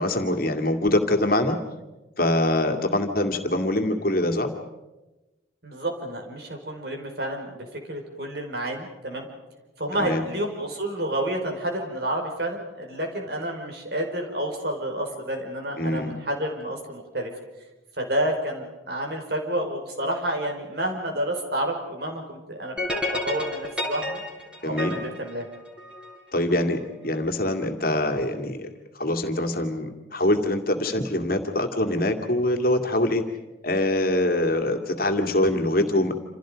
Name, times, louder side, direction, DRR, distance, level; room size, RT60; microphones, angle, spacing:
voice 1, 0.0-1.6 2.2-4.5 10.0-10.2 15.8-16.1 24.6-25.0 26.3-28.7 29.0-33.2 33.6-36.1, left 1 dB, 50° left, 5 dB, 2.3 m, -24 dB
voice 2, 5.6-9.3 9.8-17.3 18.0-24.2 24.6-25.5, right 1 dB, 55° right, 1 dB, 5.0 m, -30 dB
sound 1, 22.8-26.2, left 2 dB, 5° right, 4.9 m, -30 dB
28.5 x 28.0 x 5.2 m, 1.1 s
head